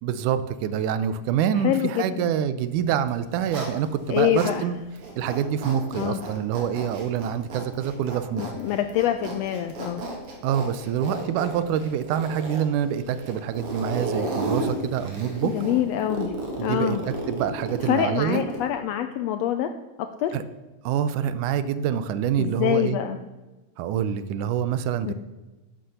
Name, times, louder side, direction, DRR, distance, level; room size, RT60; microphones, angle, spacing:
voice 1, 0.0-4.8 5.2-8.5 10.4-15.6 16.6-17.0 17.3-18.4 20.3-20.4 20.8-23.0 23.8-25.1, right 9 dB, 85° right, 13 dB, 2.2 m, -26 dB
voice 2, 1.6-2.3 4.1-4.6 5.9-6.2 8.4-10.0 15.4-16.3 16.6-17.0 17.8-19.7 20.0-20.4 22.4-23.2 25.1-25.2, left 11 dB, 80° left, 8 dB, 1.5 m, -25 dB
Zipper (clothing), 3.0-4.6 5.0-18.7, right 2 dB, 50° right, 2.5 m, -34 dB
11.0 x 7.8 x 6.7 m, 1.1 s
omnidirectional pair, 3.5 m